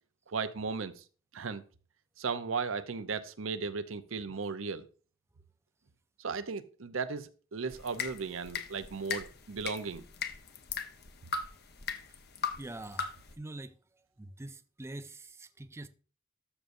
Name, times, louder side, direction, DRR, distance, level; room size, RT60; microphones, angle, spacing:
voice 1, 0.3-1.0 1.3-1.6 2.2-4.9 6.2-10.1, right 5 dB, 85° right, 0.7 m, -36 dB
sound 1, 7.7-13.3, left 6 dB, 55° left, 1.0 m, -39 dB
voice 2, 12.5-13.7 14.2-15.9, right 2 dB, 15° right, 0.4 m, -44 dB
12.5 x 6.5 x 2.6 m
head